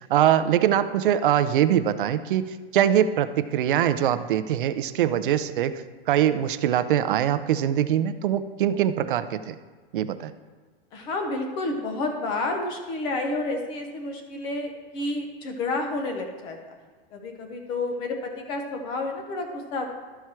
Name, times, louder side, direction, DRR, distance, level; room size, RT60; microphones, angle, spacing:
voice 1, 0.1-2.4 2.7-5.8 6.1-9.5 9.9-10.3, right 10 dB, 55° right, 12 dB, 0.5 m, -22 dB
voice 2, 10.9-16.6 17.1-19.8, left 2 dB, 15° left, 4 dB, 0.5 m, -30 dB
12.5 x 4.4 x 4.6 m, 1.4 s
supercardioid pair, 175°, 32 cm